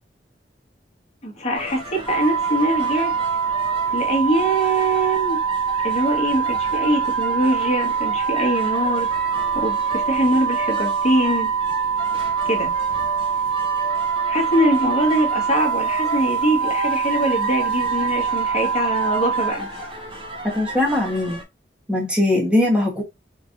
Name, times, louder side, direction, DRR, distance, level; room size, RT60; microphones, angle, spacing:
voice 1, 1.2-3.1 3.9-5.4 5.8-9.1 9.5-11.5 12.4-12.7 14.2-19.7, right 1 dB, 40° left, 1.3 m, -23 dB
sound 1, 1.5-21.4, equal, 30° right, 1.2 m, -34 dB
sound 2, 2.1-19.5, right 6 dB, 15° left, 0.8 m, -23 dB
voice 2, 20.5-21.4 21.9-23.0, left 1 dB, 5° right, 1.1 m, -20 dB
4.0 x 3.2 x 2.5 m
head